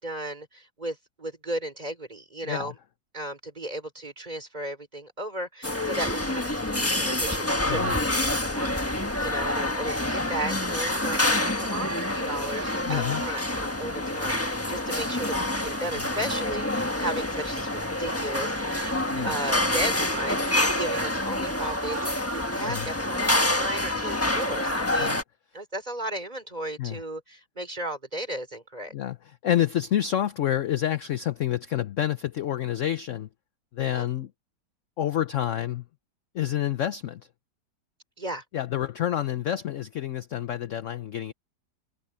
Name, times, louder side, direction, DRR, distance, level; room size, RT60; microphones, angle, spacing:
voice 1, 0.0-2.7 3.1-18.9 19.2-25.2 25.5-28.9 33.9-34.1 38.2-38.4, right 1 dB, 25° right, 4.2 m, -35 dB
sound 1, 5.6-25.2, left 1 dB, 10° left, 1.1 m, -27 dB
voice 2, 7.6-8.0 12.8-13.2 19.1-19.3 22.6-22.9 25.0-25.2 26.8-27.0 28.9-29.2 29.4-33.3 33.7-34.3 35.0-35.8 36.3-37.2 38.5-41.3, left 11 dB, 60° left, 0.9 m, -28 dB
omnidirectional pair, 1.8 m